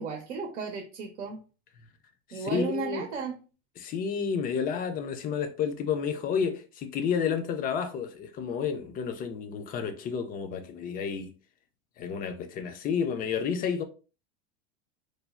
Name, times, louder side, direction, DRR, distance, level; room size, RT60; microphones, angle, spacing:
voice 1, 0.0-1.4 2.3-3.4, right 5 dB, 85° right, 0.7 m, -34 dB
voice 2, 2.3-3.0 3.8-11.3 12.0-13.8, left 6 dB, 25° left, 0.3 m, -30 dB
3.1 x 2.0 x 2.3 m
hypercardioid pair, 105°, 35 cm